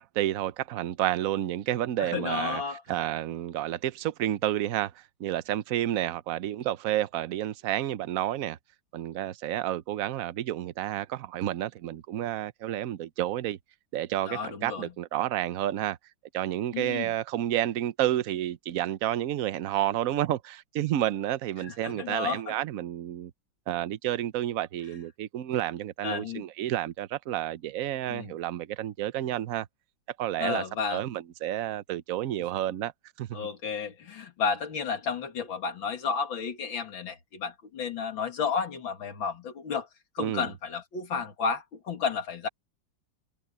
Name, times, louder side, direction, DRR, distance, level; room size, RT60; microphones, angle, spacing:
voice 1, 0.0-2.6 2.9-8.6 8.9-13.6 13.9-16.0 16.3-23.3 23.7-29.7 30.2-30.6 30.9-32.9 33.2-33.5 40.2-40.5, right 12 dB, 60° right, 0.9 m, -30 dB
voice 2, 2.0-2.8 14.3-14.9 16.7-17.1 21.7-22.5 26.0-26.4 28.1-28.3 30.4-31.0 33.3-39.9 40.1-42.5, left 5 dB, 80° left, 2.8 m, -32 dB
omnidirectional pair, 2.1 m